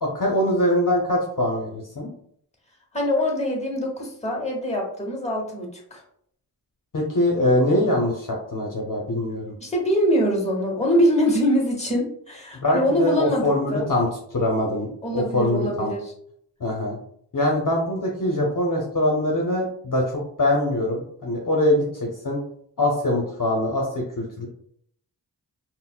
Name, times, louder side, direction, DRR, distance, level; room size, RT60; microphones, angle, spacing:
voice 1, 0.0-2.1 6.9-9.5 12.6-14.9 15.1-15.9 16.6-17.0 17.3-22.4 22.8-24.5, left 1 dB, 50° left, -1 dB, 0.7 m, -23 dB
voice 2, 2.9-6.0 9.6-13.9 15.0-16.1, equal, 15° left, -1 dB, 1.0 m, -23 dB
3.8 x 2.0 x 2.3 m, 0.66 s
cardioid pair, 45°, 42 cm